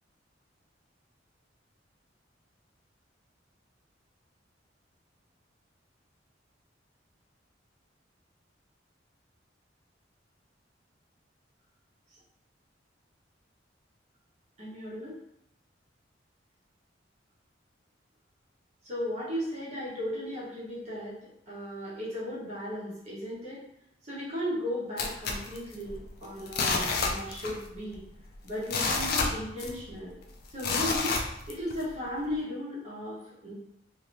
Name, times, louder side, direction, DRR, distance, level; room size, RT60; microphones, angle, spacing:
voice 1, 14.6-15.2 18.8-23.6 24.0-28.0 28.4-30.2 30.5-31.2 31.5-33.5, equal, 40° right, -8 dB, 1.1 m, -36 dB
sound 1, 25.0-26.1 26.5-27.7 27.9-28.0 28.5-30.0 30.6-31.8 32.3-32.4, left 4 dB, 55° left, 0.4 m, -29 dB
2.8 x 2.6 x 3.2 m, 0.76 s
head